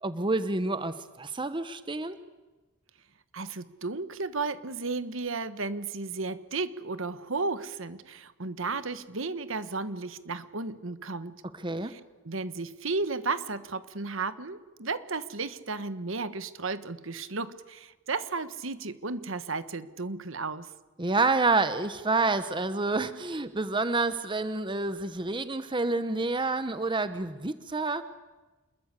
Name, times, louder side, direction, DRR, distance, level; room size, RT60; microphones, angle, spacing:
voice 1, 0.0-2.2 11.6-11.9 21.0-28.0, right 3 dB, 25° right, 12 dB, 1.0 m, -28 dB
voice 2, 3.3-11.4 11.8-20.7, right 3 dB, 65° right, 13 dB, 1.4 m, -34 dB
28.0 x 21.5 x 8.3 m, 1.2 s
head